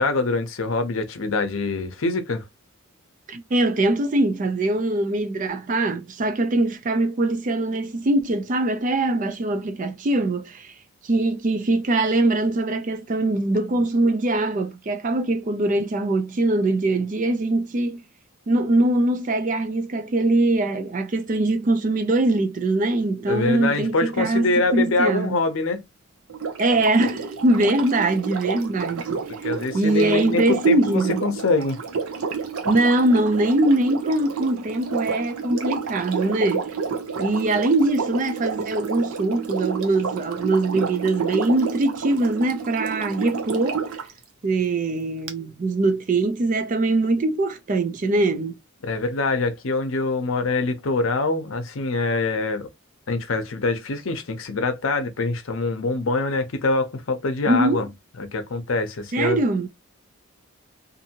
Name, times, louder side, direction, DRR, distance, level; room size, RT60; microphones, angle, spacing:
voice 1, 0.0-2.4 23.3-25.8 29.4-31.8 48.8-52.7 53.1-57.9 58.2-59.4, left 3 dB, 70° left, 0.6 m, -24 dB
voice 2, 3.3-10.7 11.0-18.0 18.5-25.3 26.6-29.2 29.7-31.2 32.6-36.6 37.2-43.8 44.4-48.6 57.5-57.9 59.1-59.7, right 2 dB, 35° right, 0.4 m, -22 dB
Sink (filling or washing), 26.3-44.1 45.3-45.4, right 6 dB, 90° right, 0.6 m, -30 dB
2.6 x 2.6 x 2.7 m
head